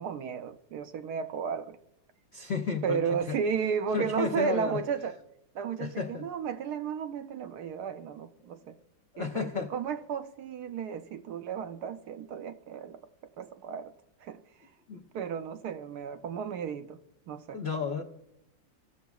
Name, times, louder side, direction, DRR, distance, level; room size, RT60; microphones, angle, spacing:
voice 1, 0.0-1.8 2.8-5.1 5.5-8.8 9.2-13.0 13.4-13.9 14.2-14.4 15.1-17.0 17.3-17.6, right 7 dB, 70° right, 10 dB, 1.0 m, -33 dB
voice 2, 2.3-3.0 3.3-3.4 3.9-4.8 5.8-6.3 9.1-9.7 14.9-15.0 17.5-18.0, left 5 dB, 75° left, 1 dB, 0.6 m, -32 dB
17.0 x 7.0 x 2.3 m, 0.84 s
omnidirectional pair, 2.0 m